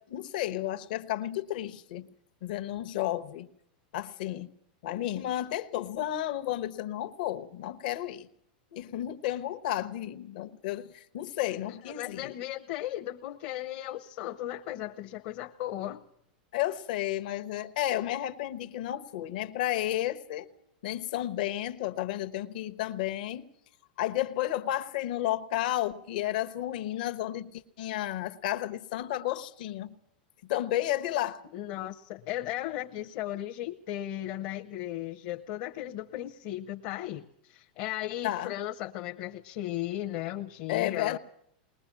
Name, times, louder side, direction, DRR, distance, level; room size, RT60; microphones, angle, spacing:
voice 1, 0.0-2.1 2.4-3.5 3.9-4.5 4.8-8.3 8.7-12.3 16.5-20.5 20.8-23.4 24.0-27.5 27.8-29.9 30.5-31.4 38.2-38.5 40.7-41.2, left 13 dB, 70° left, 1.0 m, -32 dB
voice 2, 11.9-16.0 31.5-41.2, left 13 dB, 50° left, 0.8 m, -36 dB
21.0 x 19.5 x 7.4 m
supercardioid pair, 145°, 5 cm